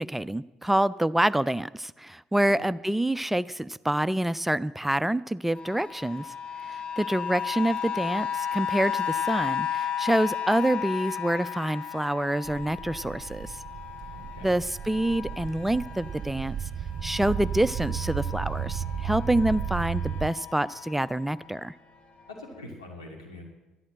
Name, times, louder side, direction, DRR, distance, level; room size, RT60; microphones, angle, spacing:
voice 1, 0.0-6.3 6.6-13.6 14.4-16.6 17.0-21.7, right 1 dB, 5° right, 17 dB, 0.4 m, -27 dB
sound 1, 5.5-16.6 16.9-21.5 22.2-22.3, left 8 dB, 45° left, 1.5 m, -34 dB
sound 2, 12.5-20.3, right 8 dB, 45° right, 0.8 m, -34 dB
voice 2, 14.1-14.5 22.3-23.4, left 2 dB, 85° left, 0 dB, 2.6 m, -44 dB
11.5 x 11.5 x 7.6 m, 1.0 s
figure-of-eight pair, 55°, 3 cm